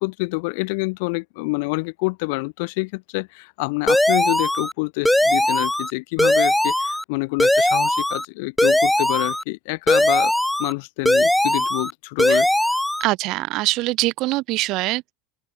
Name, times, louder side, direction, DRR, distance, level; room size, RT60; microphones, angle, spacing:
voice 1, 0.0-10.3 10.6-12.5, left 30 dB, 65° left, 1.2 m, -27 dB
sound 1, 3.9-4.7 5.1-5.9 6.2-7.0 7.4-8.3 8.6-9.4 9.9-10.7 11.1-11.9 12.2-13.0, left 1 dB, 5° left, 0.7 m, -19 dB
voice 2, 13.0-15.1, right 20 dB, 55° right, 0.4 m, -23 dB
open air
supercardioid pair, 115°, 0 cm